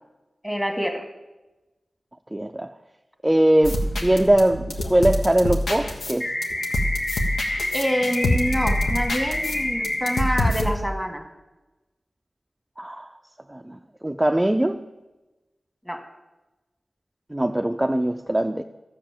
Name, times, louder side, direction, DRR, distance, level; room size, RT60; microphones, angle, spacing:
voice 1, 0.4-1.0 7.7-11.2 15.8-16.0, equal, 5° left, 4 dB, 1.7 m, -26 dB
voice 2, 2.3-2.7 3.2-6.3 12.8-13.1 13.5-13.8 14.0-14.8 17.3-18.6, right 1 dB, 15° right, 6 dB, 0.4 m, -21 dB
sound 1, 3.6-10.8, left 1 dB, 90° left, 1.3 m, -26 dB
sound 2, 6.2-10.2, left 1 dB, 55° left, 2.2 m, -28 dB
13.0 x 5.2 x 7.4 m, 1.1 s
wide cardioid pair, 65°, 0 cm